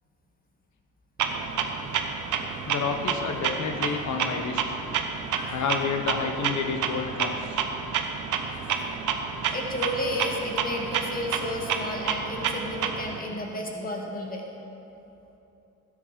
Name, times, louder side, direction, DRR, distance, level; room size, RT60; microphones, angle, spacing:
Clock, 1.2-13.2, right 6 dB, 70° right, 1.0 m, -30 dB
voice 1, 2.7-4.8 5.5-7.6, left 5 dB, 60° left, 5 dB, 1.2 m, -30 dB
voice 2, 3.4-3.9 5.4-5.7 7.0-7.2 9.5-14.4, left 1 dB, 25° left, 0 dB, 2.0 m, -33 dB
13.0 x 8.6 x 5.2 m, 2.9 s
cardioid pair, 85°, 32 cm